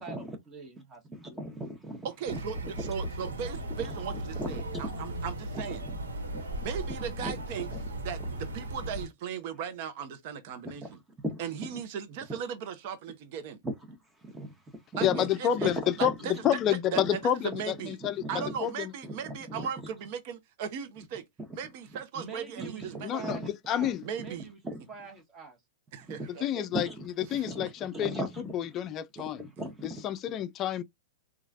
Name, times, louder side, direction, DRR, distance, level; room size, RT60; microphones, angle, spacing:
voice 1, 0.0-1.4 22.1-24.6 24.9-25.6, right 5 dB, 25° right, 1.2 m, -45 dB
voice 2, 1.1-2.4 2.8-2.9 3.2-3.3 3.8-3.9 4.3-5.1 5.5-6.0 6.3-6.5 7.2-7.4 7.7-7.8 8.2-8.3 11.2-11.4 11.7-11.8 12.3-12.4 13.6-16.2 16.9-17.1 18.0-18.5 19.0-19.7 21.4-21.6 22.6-23.5 24.7-24.8 26.0-26.3 26.7-28.6 29.2-30.0, right 1 dB, 10° right, 0.9 m, -38 dB
voice 3, 2.0-5.8 6.6-7.7 8.0-10.8 11.4-13.6 15.0-15.7 16.2-16.3 16.9-17.2 17.4-18.0 18.3-21.2 21.6-23.4 24.0-24.5 25.9-26.7 27.3-27.4, right 7 dB, 50° right, 0.8 m, -37 dB
sound 1, 2.3-9.1, right 1 dB, 80° right, 1.2 m, -37 dB
voice 4, 15.0-18.2 18.6-18.9 23.0-24.0 26.4-26.9 27.2-28.3 28.5-29.5 29.8-30.8, left 10 dB, 35° left, 0.4 m, -29 dB
3.1 x 2.4 x 2.5 m
hypercardioid pair, 110°, 0 cm